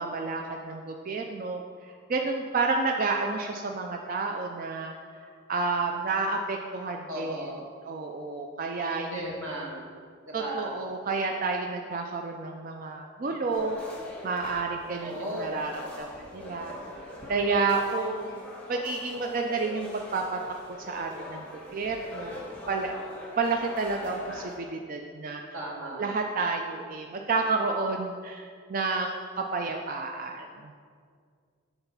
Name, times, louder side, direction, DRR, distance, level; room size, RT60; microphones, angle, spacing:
voice 1, 0.0-7.5 7.8-9.4 10.3-13.8 14.2-16.1 16.3-16.7 17.3-18.4 18.7-20.4 20.9-21.5 21.7-22.4 22.7-23.0 23.4-25.4 26.0-30.7, right 3 dB, 40° right, 2 dB, 0.4 m, -30 dB
voice 2, 7.1-7.6 8.9-9.8 10.3-10.7 15.0-15.6 25.5-26.1, right 1 dB, 85° right, -3 dB, 1.7 m, -35 dB
sound 1, 13.5-24.6, left 1 dB, 5° left, 1.1 m, -42 dB
8.0 x 3.9 x 5.4 m, 2.1 s
head